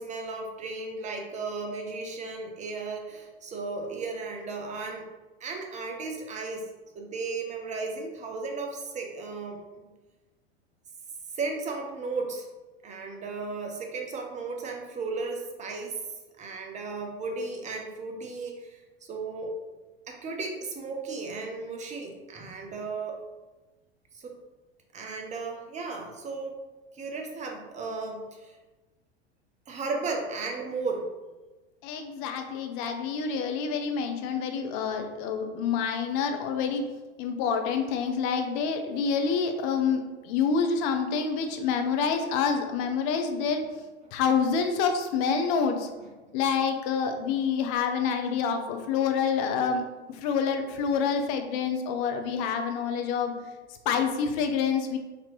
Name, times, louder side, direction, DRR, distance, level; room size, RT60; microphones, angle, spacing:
voice 1, 0.0-5.0 5.4-6.7 6.9-9.9 11.3-12.5 12.8-16.0 16.4-18.8 19.1-19.5 20.1-23.2 24.1-24.3 24.9-26.6 26.9-28.5 29.7-31.1 44.0-44.2 46.0-46.1, right 3 dB, 20° right, 2 dB, 0.7 m, -35 dB
voice 2, 31.8-36.8 37.2-43.6 44.1-45.9 46.3-49.8 50.2-53.3 53.9-55.0, left 6 dB, 45° left, 6 dB, 0.6 m, -27 dB
4.0 x 2.8 x 3.0 m, 1.2 s
figure-of-eight pair, 85°, 33 cm